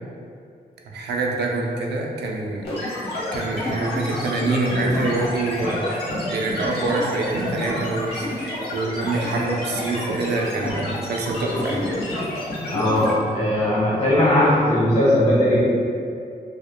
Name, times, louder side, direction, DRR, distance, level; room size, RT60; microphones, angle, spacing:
voice 1, 0.9-2.7 3.3-5.9 6.3-11.8, right 3 dB, 85° right, -1 dB, 0.4 m, -26 dB
sound 1, 2.6-13.1, left 1 dB, 80° left, 1.1 m, -28 dB
voice 2, 12.6-15.6, left 1 dB, 45° left, -7 dB, 1.5 m, -19 dB
4.9 x 2.0 x 2.2 m, 2.4 s
wide cardioid pair, 115°, 17 cm